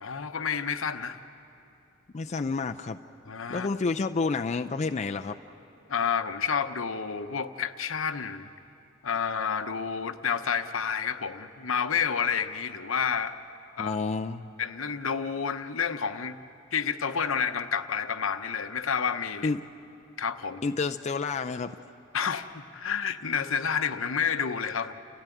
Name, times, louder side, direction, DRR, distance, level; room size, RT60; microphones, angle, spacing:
voice 1, 0.0-1.2 3.3-3.7 5.9-8.5 9.0-13.3 13.8-14.0 14.6-16.4 16.7-19.5 20.2-20.6 22.1-22.5 22.7-24.9, left 6 dB, 75° left, 9 dB, 0.9 m, -29 dB
voice 2, 2.1-3.0 3.5-5.4 13.8-14.5 19.4-19.6 20.6-21.8, left 4 dB, 35° left, 6 dB, 0.4 m, -29 dB
29.5 x 14.5 x 9.2 m, 2.8 s
head